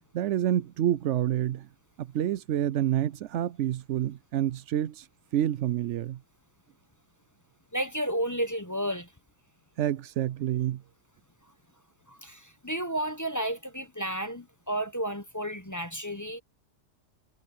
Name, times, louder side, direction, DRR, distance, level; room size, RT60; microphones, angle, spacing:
voice 1, 0.1-1.7 2.0-5.1 5.3-6.2 9.8-10.8, right 11 dB, 90° right, 0.6 m, -28 dB
voice 2, 7.7-9.1 12.1-16.4, right 1 dB, 15° left, 0.8 m, -32 dB
omnidirectional pair, 1.9 m